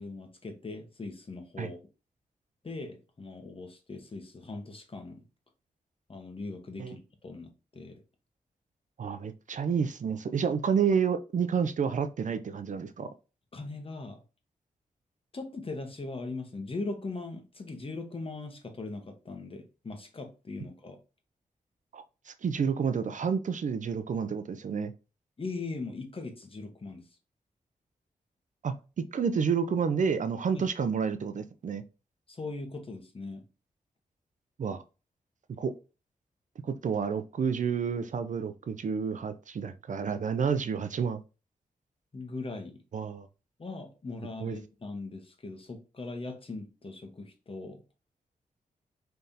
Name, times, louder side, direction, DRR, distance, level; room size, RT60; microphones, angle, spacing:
voice 1, 0.0-1.8 2.6-5.2 6.1-8.0 13.5-14.2 15.3-21.0 25.4-27.1 30.5-30.7 32.3-33.4 42.1-42.7 43.6-47.8, left 3 dB, 40° left, 1.2 m, -40 dB
voice 2, 9.0-13.1 21.9-24.9 28.6-31.8 34.6-34.8 35.6-35.7 36.6-41.2 42.9-43.3 44.4-44.6, right 6 dB, 60° right, 0.5 m, -30 dB
5.3 x 3.4 x 2.8 m
cardioid pair, 60°, 15 cm